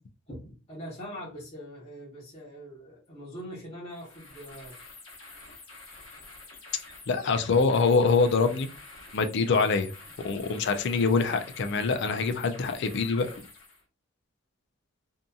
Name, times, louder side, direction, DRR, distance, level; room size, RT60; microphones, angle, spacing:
voice 1, 0.3-4.7, equal, 30° left, -7 dB, 1.0 m, -42 dB
sound 1, 3.9-13.8, left 3 dB, 75° left, 0.9 m, -48 dB
voice 2, 7.1-8.7 9.1-9.9 10.2-13.5, left 4 dB, 60° left, 8 dB, 0.4 m, -24 dB
2.7 x 2.5 x 2.3 m, 0.34 s
head